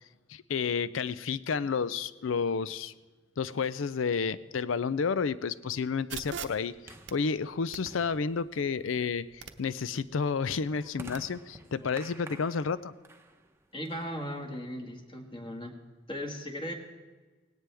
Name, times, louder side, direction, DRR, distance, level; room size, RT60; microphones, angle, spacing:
voice 1, 0.3-2.9 3.4-12.9, left 5 dB, 90° left, 16 dB, 0.5 m, -31 dB
sound 1, 4.2-14.6, right 2 dB, 15° right, 0.8 m, -52 dB
sound 2, 6.1-11.2, right 7 dB, 65° right, 0.8 m, -46 dB
voice 2, 13.7-15.7 16.1-16.7, equal, 30° left, 2 dB, 1.8 m, -37 dB
18.0 x 17.5 x 3.5 m, 1.3 s
head